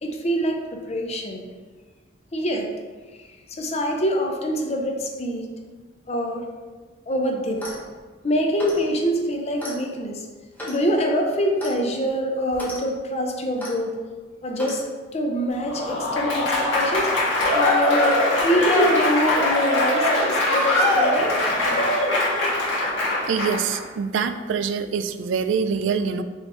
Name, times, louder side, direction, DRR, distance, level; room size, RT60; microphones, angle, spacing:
voice 1, 0.0-1.4 2.3-2.7 3.5-5.5 6.1-6.5 7.1-7.6 8.2-10.3 10.7-14.0 14.4-14.8 15.1-17.2 17.5-21.8, equal, 35° left, 2 dB, 0.5 m, -25 dB
Clock, 7.5-7.9 8.6-8.9 9.6-9.8 10.6-10.8 11.6-11.8 12.5-12.8 13.6-13.8 14.6-14.8, equal, 10° left, 1.0 m, -35 dB
Applause / Crowd, 15.6-23.8, left 2 dB, 85° left, 1.4 m, -22 dB
voice 2, 23.3-26.2, right 6 dB, 80° right, 10 dB, 0.3 m, -25 dB
5.5 x 3.0 x 3.2 m, 1.4 s
head